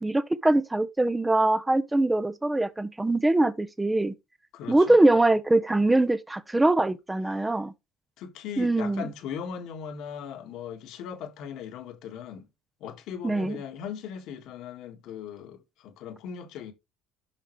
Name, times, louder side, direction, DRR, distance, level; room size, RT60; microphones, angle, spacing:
voice 1, 0.0-4.1 4.7-7.7 8.6-9.1 13.2-13.6, right 2 dB, 10° right, 0.8 m, -23 dB
voice 2, 4.5-5.0 7.3-7.5 8.2-12.5 12.8-16.7, left 8 dB, 65° left, 1.8 m, -39 dB
9.0 x 5.8 x 3.2 m
supercardioid pair, 110°, 0 cm